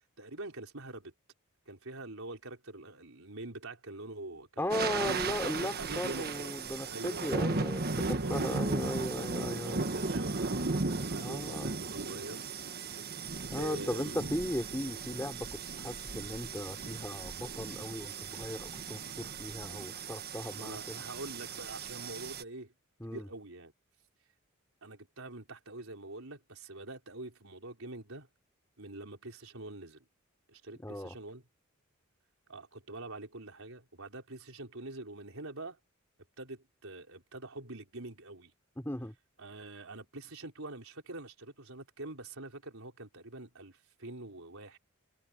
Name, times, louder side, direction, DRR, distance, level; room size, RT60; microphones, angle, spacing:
voice 1, 0.2-1.1 1.7-6.6 6.8-7.2 7.9-8.9 9.5-12.4 12.7-13.3 13.6-14.3 20.5-22.7 23.1-23.7 24.8-28.3 28.8-30.0 30.5-31.4 32.5-35.8 36.4-38.5 39.4-44.8, right 2 dB, 75° right, 5.0 m, -45 dB
voice 2, 4.6-7.8 8.1-9.8 11.2-11.7 13.5-21.0 23.0-23.3 30.8-31.1 38.8-39.1, left 1 dB, 10° left, 3.9 m, -37 dB
sound 1, 4.7-22.4, right 3 dB, 50° right, 1.4 m, -36 dB
head